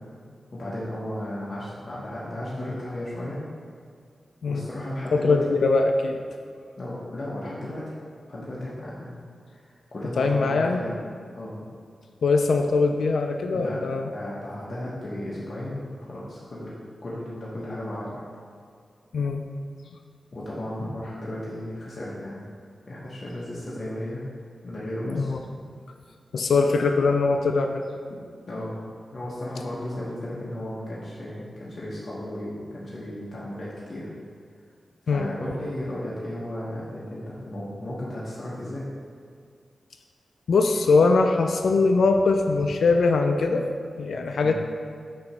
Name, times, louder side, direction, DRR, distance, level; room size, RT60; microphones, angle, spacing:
voice 1, 0.5-3.4 4.5-5.5 6.8-7.8 8.3-9.2 9.5-11.0 11.3-11.7 13.5-13.8 14.1-16.7 17.0-18.2 20.3-22.5 22.9-24.2 24.6-25.3 28.5-28.7 29.1-34.1 35.0-38.9 44.4-44.5, left 1 dB, 55° left, -8 dB, 1.1 m, -34 dB
voice 2, 5.1-6.2 10.2-10.8 12.2-14.1 19.1-19.4 25.1-25.4 26.3-27.8 35.1-35.3 40.5-43.7 44.0-44.5, left 3 dB, 80° left, 4 dB, 0.3 m, -21 dB
7.5 x 2.9 x 5.5 m, 2.1 s
cardioid pair, 75°, 0 cm